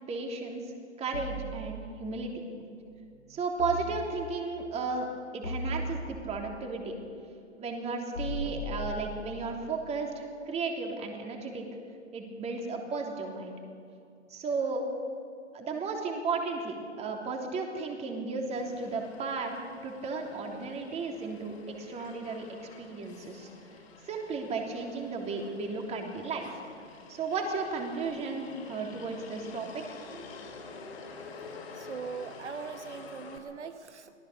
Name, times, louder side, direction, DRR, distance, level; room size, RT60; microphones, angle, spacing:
voice 1, 0.1-2.3 2.6-2.7 3.3-5.1 5.3-7.0 7.6-11.7 12.1-13.5 14.3-14.8 15.5-23.5 24.0-26.6 27.1-29.8, right 4 dB, 20° right, 2 dB, 3.3 m, -34 dB
sound 1, 1.1-2.2 3.6-4.6 5.4-6.5 8.1-9.6, left 1 dB, 85° left, 6.1 m, -38 dB
Motor vehicle (road), 18.5-33.4, left 4 dB, 60° left, 4.7 m, -49 dB
voice 2, 31.7-34.1, right 5 dB, 70° right, 9 dB, 1.2 m, -41 dB
25.5 x 18.0 x 6.8 m, 2.5 s
figure-of-eight pair, 120°, 35 cm